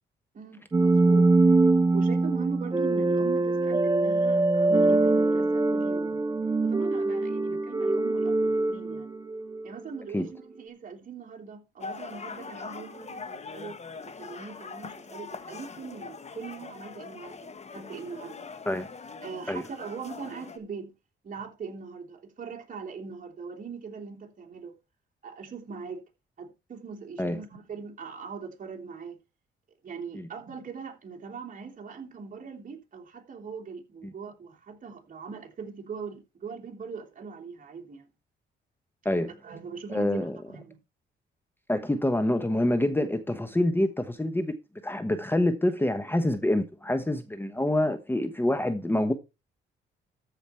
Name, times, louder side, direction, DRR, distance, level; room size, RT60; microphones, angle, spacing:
voice 1, 0.3-1.4 1.9-6.2 6.6-9.1 9.6-18.5 19.2-20.9 21.2-24.8 25.2-26.0 26.4-29.2 29.8-38.1 39.4-40.8, right 5 dB, 45° right, 3.2 m, -41 dB
sound 1, 0.7-9.7, right 2 dB, 20° right, 0.8 m, -23 dB
sound 2, 11.8-20.6, left 4 dB, 35° left, 1.5 m, -42 dB
voice 2, 39.9-40.3 41.7-44.5 44.8-49.1, left 1 dB, 10° left, 1.1 m, -26 dB
14.0 x 5.1 x 4.4 m
cardioid pair, 90°, 20 cm